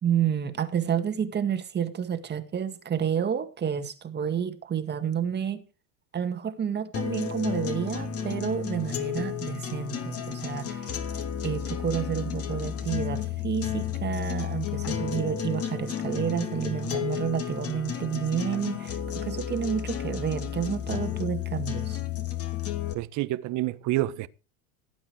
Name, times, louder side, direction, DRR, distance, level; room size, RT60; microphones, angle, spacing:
voice 1, 0.0-5.6 6.1-10.9 11.4-22.0, right 8 dB, 25° right, 2.1 m, -30 dB
sound 1, 6.9-22.9, left 8 dB, 35° left, 2.8 m, -32 dB
voice 2, 22.9-24.3, right 16 dB, 50° right, 1.2 m, -28 dB
17.5 x 8.7 x 4.8 m
supercardioid pair, 120°, 39 cm